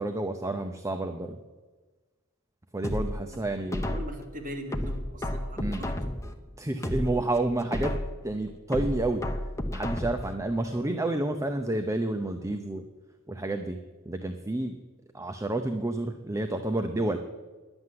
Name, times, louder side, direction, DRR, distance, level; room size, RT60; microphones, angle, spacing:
voice 1, 0.0-1.4 2.7-4.0 5.6-5.8 6.6-7.9 8.2-9.2 9.7-12.9 13.3-13.8 14.1-14.7 15.1-17.2, right 2 dB, 15° right, 5 dB, 0.6 m, -30 dB
sound 1, 2.8-4.3 4.7-6.3 6.7-8.3 8.7-10.3 10.7-10.8, left 1 dB, 15° left, 0.9 m, -32 dB
voice 2, 3.8-6.1, equal, 40° right, 1 dB, 2.4 m, -40 dB
11.0 x 9.7 x 7.7 m, 1.3 s
head